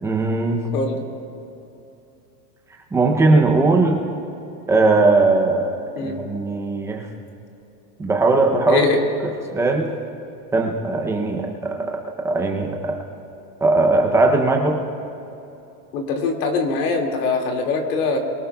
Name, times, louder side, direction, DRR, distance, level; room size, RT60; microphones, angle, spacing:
voice 1, 0.0-0.7 2.9-4.0 4.7-5.7 6.0-7.1 8.0-8.8 9.5-9.9 10.5-13.0 13.6-14.8, right 3 dB, 5° right, 1 dB, 0.5 m, -19 dB
voice 2, 8.7-9.0 15.9-18.2, left 4 dB, 65° left, 2 dB, 2.2 m, -22 dB
22.5 x 18.5 x 2.3 m, 2.8 s
supercardioid pair, 155°, 49 cm